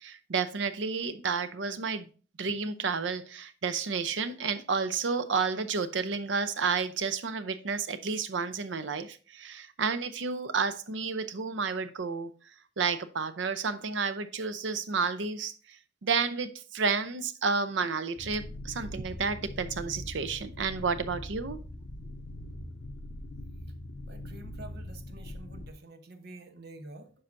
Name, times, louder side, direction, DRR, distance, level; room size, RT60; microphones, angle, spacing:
voice 1, 0.0-2.1 2.4-12.3 12.8-21.6, right 5 dB, 80° right, 0.6 m, -31 dB
sound 1, 18.2-25.7, left 1 dB, 65° left, 0.6 m, -42 dB
voice 2, 24.1-27.1, right 2 dB, 60° right, 1.0 m, -48 dB
9.5 x 5.5 x 2.6 m
head